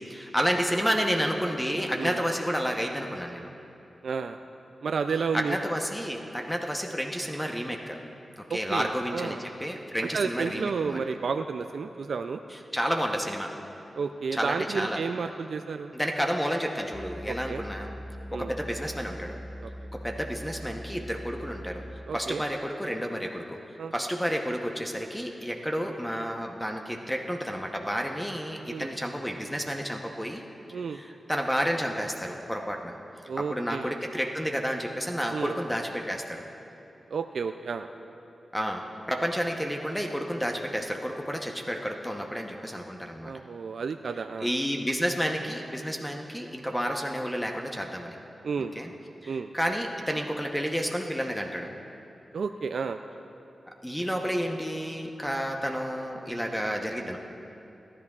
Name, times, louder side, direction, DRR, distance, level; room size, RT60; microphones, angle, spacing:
voice 1, 0.1-3.5 5.3-8.0 8.5-11.0 12.5-13.5 14.3-15.0 15.9-17.9 18.3-19.4 19.9-23.6 23.9-30.4 30.9-32.9 33.4-36.4 38.5-38.8 39.1-43.3 44.4-48.2 48.6-48.9 49.2-51.7 53.8-57.2, equal, 5° left, 2 dB, 0.9 m, -30 dB
voice 2, 4.0-4.4 4.8-5.6 8.5-9.4 10.1-12.4 13.9-15.9 17.3-17.6 18.3-18.5 19.6-19.9 22.1-22.4 23.8-23.9 28.7-28.9 30.7-31.0 33.3-34.0 35.3-35.6 37.1-37.9 43.2-44.5 48.4-48.7 49.3-49.5 52.3-53.0, right 5 dB, 75° right, 7 dB, 0.3 m, -31 dB
sound 1, 16.9-22.2, equal, 35° left, 0.5 m, -41 dB
18.0 x 10.5 x 2.4 m, 2.9 s
cardioid pair, 45°, 0 cm